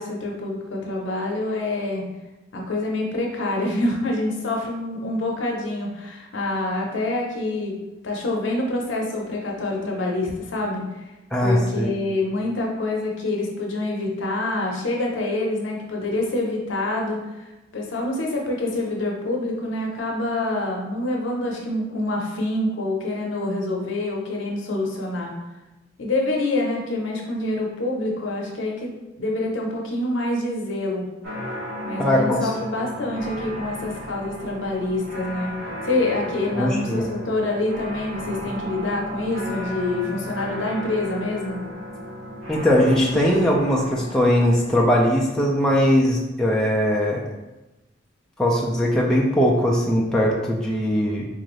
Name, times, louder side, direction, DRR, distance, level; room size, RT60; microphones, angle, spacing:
voice 1, 0.0-2.1 2.5-10.9 11.4-17.2 17.7-25.3 26.0-28.9 29.2-31.0 31.9-35.6 35.8-41.6, left 2 dB, 70° left, -1 dB, 0.7 m, -26 dB
voice 2, 11.3-11.9 32.0-32.4 36.6-37.1 42.5-47.2 48.4-51.3, equal, 5° left, -4 dB, 0.4 m, -20 dB
sound 1, 31.2-45.2, equal, 75° right, 1.4 m, -34 dB
3.7 x 2.5 x 3.1 m, 1.0 s
head